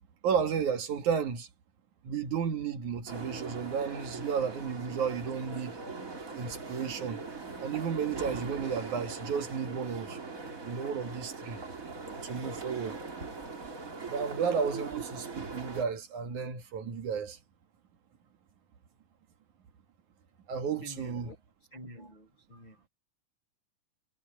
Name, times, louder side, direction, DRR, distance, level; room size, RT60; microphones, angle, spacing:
voice 1, 0.2-1.5 2.0-5.8 6.4-7.2 7.6-10.2 10.7-11.6 12.2-13.0 14.1-17.4 20.5-21.3, right 6 dB, 55° right, 2.6 m, -33 dB
sound 1, 3.1-15.8, right 4 dB, 25° right, 2.3 m, -41 dB
voice 2, 20.8-21.4 21.7-22.7, equal, 25° left, 7.0 m, -47 dB
omnidirectional pair, 4.8 m